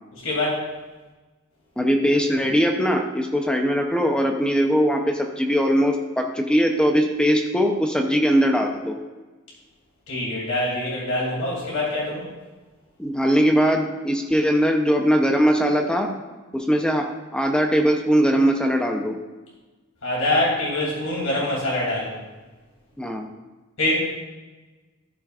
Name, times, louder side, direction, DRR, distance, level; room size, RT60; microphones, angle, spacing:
voice 1, 0.2-0.6 10.1-12.3 20.0-22.2 23.8-24.1, left 1 dB, 90° left, -5 dB, 2.8 m, -24 dB
voice 2, 1.8-9.0 13.0-16.1 16.5-17.1 17.3-19.1 23.0-23.3, equal, 5° left, 3 dB, 0.6 m, -20 dB
13.0 x 6.2 x 2.4 m, 1.2 s
head